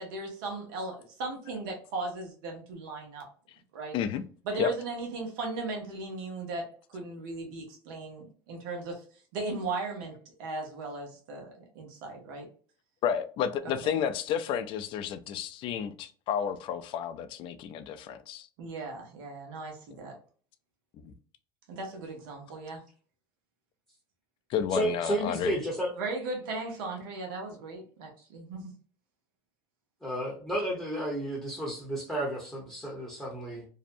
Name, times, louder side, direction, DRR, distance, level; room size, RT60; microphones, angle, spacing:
voice 1, 0.0-3.2 3.7-3.9 4.4-9.0 9.3-11.5 11.7-12.5 18.6-20.1 21.7-22.8 26.0-28.7, right 3 dB, 80° right, 0.9 m, -37 dB
voice 2, 13.0-18.5 21.0-21.1 24.5-25.5, left 8 dB, 50° left, 0.4 m, -31 dB
voice 3, 24.7-25.9 30.0-33.6, right 1 dB, ahead, 0.7 m, -32 dB
2.6 x 2.1 x 2.5 m
supercardioid pair, 120°, 11 cm